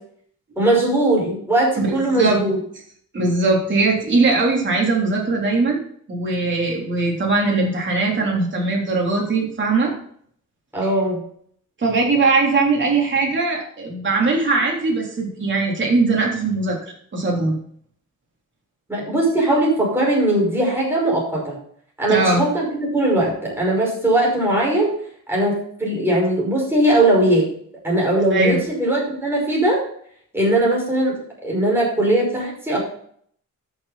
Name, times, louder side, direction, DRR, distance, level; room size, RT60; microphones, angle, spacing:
voice 1, 0.6-2.6 10.7-11.2 18.9-21.6 22.0-24.9 25.3-27.5 27.8-29.8 30.3-32.8, right 1 dB, 5° right, -4 dB, 5.5 m, -19 dB
voice 2, 3.1-5.8 6.1-9.9 11.8-16.8 17.1-17.6 22.1-22.4 28.3-28.6, right 3 dB, 35° right, -2 dB, 3.6 m, -20 dB
13.0 x 6.7 x 4.3 m, 0.62 s
wide cardioid pair, 150°, 32 cm